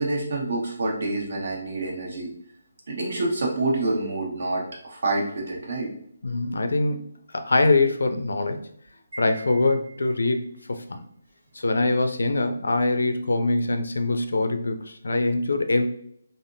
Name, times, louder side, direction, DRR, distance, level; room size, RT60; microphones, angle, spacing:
voice 1, 0.0-2.3 2.9-5.9, right 2 dB, 65° right, -1 dB, 1.0 m, -27 dB
voice 2, 6.2-7.0 7.3-8.6 9.2-11.0 11.5-15.9, left 2 dB, 80° left, 7 dB, 0.4 m, -23 dB
Wind chime, 9.1-10.5, right 3 dB, 90° right, 0.9 m, -44 dB
3.4 x 2.0 x 2.6 m, 0.68 s
hypercardioid pair, 160°, 0 cm